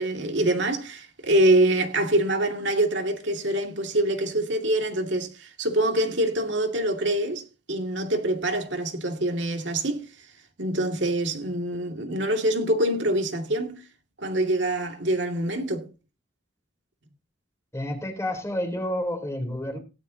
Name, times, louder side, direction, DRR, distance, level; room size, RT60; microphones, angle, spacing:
voice 1, 0.0-7.4 7.7-10.0 10.6-13.8 14.2-15.9, right 1 dB, 70° right, 2.4 m, -25 dB
voice 2, 17.7-19.8, left 1 dB, 15° left, 3.8 m, -29 dB
17.5 x 11.0 x 2.9 m
head